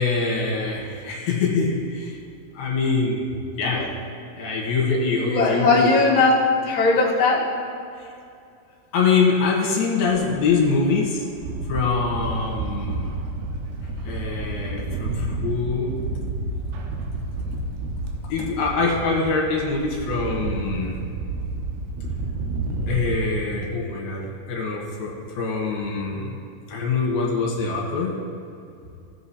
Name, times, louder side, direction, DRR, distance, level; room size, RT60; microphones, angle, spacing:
voice 1, 0.0-2.2 2.5-3.3 3.6-3.9 4.4-6.0 8.0-8.1 8.9-11.3 11.7-13.2 14.0-15.9 18.3-21.1 22.9-26.4 26.7-28.2, left 4 dB, 80° left, -2 dB, 3.1 m, -24 dB
voice 2, 5.2-6.4 6.6-7.4, left 3 dB, 30° left, -9 dB, 2.1 m, -19 dB
sound 1, 10.1-23.2, right 2 dB, 90° right, 2.9 m, -30 dB
16.0 x 7.8 x 2.8 m, 2.6 s
omnidirectional pair, 4.4 m